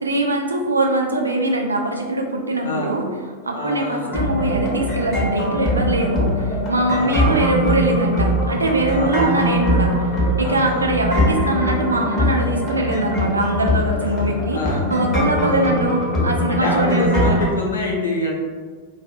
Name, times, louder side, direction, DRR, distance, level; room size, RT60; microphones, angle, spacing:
voice 1, 0.0-3.1 3.4-9.9 10.4-14.6 14.9-17.4, right 2 dB, 80° right, 2 dB, 0.3 m, -22 dB
voice 2, 2.6-3.0 3.5-4.2 6.9-7.3 8.9-9.3 10.4-10.9 14.5-14.9 15.4-15.7 16.5-18.3, left 2 dB, 75° left, -3 dB, 0.6 m, -26 dB
sound 1, 4.0-17.4, left 1 dB, 30° left, 0.8 m, -21 dB
2.3 x 2.3 x 2.5 m, 1.5 s
figure-of-eight pair, 90°, 0 cm